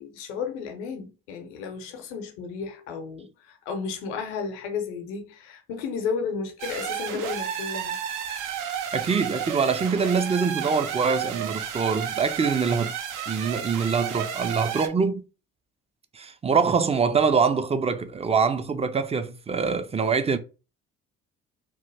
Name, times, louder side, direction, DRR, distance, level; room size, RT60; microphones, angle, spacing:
voice 1, 0.0-8.0, left 5 dB, 90° left, 0.7 m, -33 dB
sound 1, 6.6-14.9, right 8 dB, 65° right, 0.6 m, -32 dB
voice 2, 8.9-12.9 13.3-15.2 16.1-20.4, right 5 dB, 20° right, 0.4 m, -24 dB
3.0 x 2.1 x 3.2 m
hypercardioid pair, 55°, 34 cm